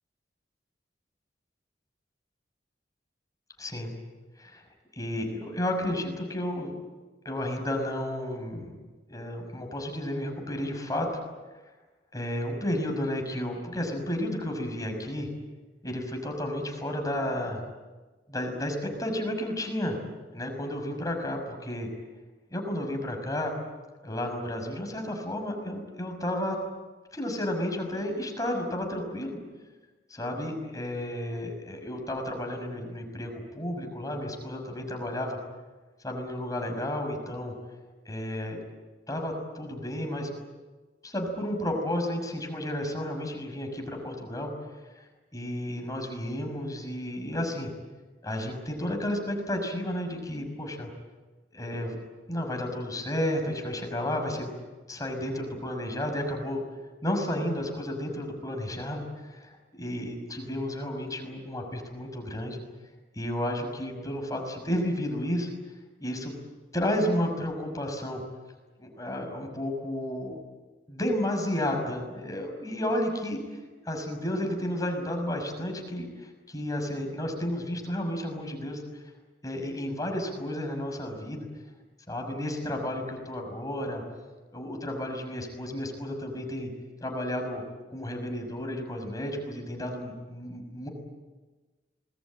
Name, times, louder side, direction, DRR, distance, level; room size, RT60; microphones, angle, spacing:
voice 1, 3.6-3.9 4.4-4.6 5.0-6.7 7.2-8.7 9.1-11.1 12.1-15.3 15.8-17.6 18.3-20.0 20.3-21.9 22.5-23.5 24.0-26.6 27.1-29.4 30.1-35.4 36.0-37.5 38.0-38.6 39.1-40.3 41.0-44.5 44.9-45.0 45.3-47.7 48.2-50.9 51.5-52.0 52.3-54.5 54.9-56.6 57.0-62.6 63.1-65.5 66.0-66.3 66.7-68.2 68.8-70.4 70.9-73.4 73.9-78.8 79.4-81.5 82.1-84.0 84.5-86.7 87.0-87.6 87.9-90.9, left 1 dB, 20° left, 3 dB, 6.1 m, -32 dB
27.0 x 21.0 x 8.8 m, 1.3 s
head